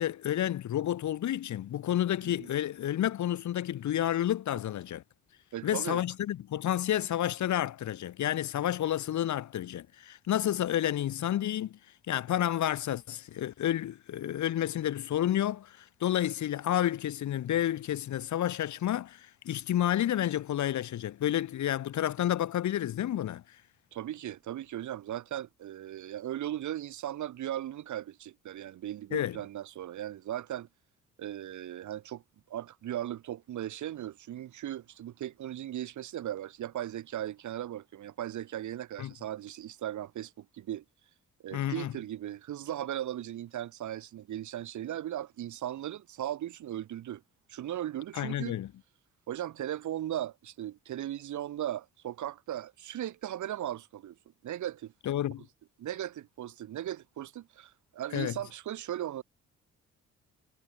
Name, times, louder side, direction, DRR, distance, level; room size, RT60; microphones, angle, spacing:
voice 1, 0.0-5.0 5.6-11.8 12.1-23.4 29.1-29.4 39.0-39.1 41.5-41.9 48.1-48.7 55.0-55.4 58.1-58.4, left 12 dB, 70° left, 2.8 m, -30 dB
voice 2, 5.5-6.0 23.9-30.7 31.2-32.2 32.5-40.8 41.4-47.2 47.5-48.6 49.3-54.2 54.4-54.9 55.8-59.2, right 12 dB, 75° right, 5.3 m, -37 dB
cardioid pair, 90°, 30 cm